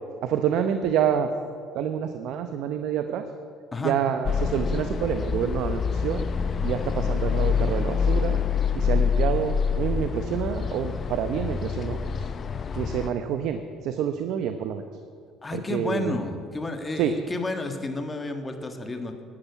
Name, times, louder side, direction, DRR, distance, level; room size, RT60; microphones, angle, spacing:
voice 1, 0.2-1.3 1.7-3.2 3.8-6.2 6.6-8.4 8.7-12.3 12.7-14.8 15.5-16.2 17.0-17.1, right 8 dB, 70° right, 8 dB, 0.8 m, -27 dB
sound 1, 4.2-13.1, left 6 dB, 40° left, 0.6 m, -26 dB
voice 2, 15.4-19.2, left 2 dB, 20° left, 5 dB, 1.7 m, -31 dB
12.0 x 11.0 x 8.4 m, 2.3 s
supercardioid pair, 95°, 0 cm